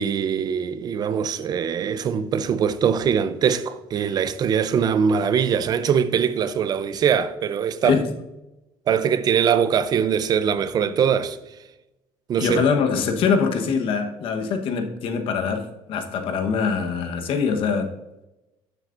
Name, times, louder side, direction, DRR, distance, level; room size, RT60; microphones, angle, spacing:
voice 1, 0.0-8.0 8.9-11.4 12.3-12.6, right 7 dB, 40° right, 0.5 m, -22 dB
voice 2, 7.8-8.2 12.4-17.9, left 5 dB, 60° left, 1.2 m, -23 dB
12.5 x 7.3 x 2.6 m
cardioid pair, 130°, 10 cm